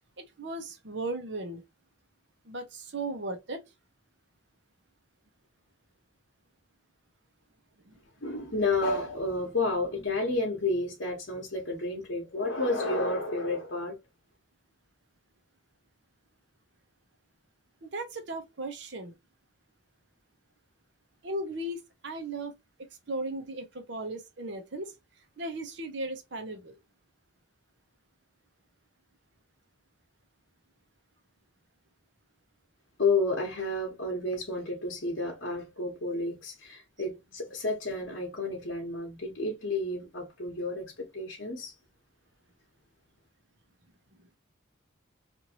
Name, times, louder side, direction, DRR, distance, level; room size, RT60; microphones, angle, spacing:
voice 1, 0.2-1.6 2.5-3.6 7.9-8.0 17.8-19.1 21.2-22.5 23.1-24.9 25.4-26.8, right 2 dB, 60° right, 0.8 m, -36 dB
voice 2, 8.2-14.0 33.0-41.7, left 2 dB, 60° left, 1.0 m, -31 dB
3.0 x 2.6 x 2.8 m
head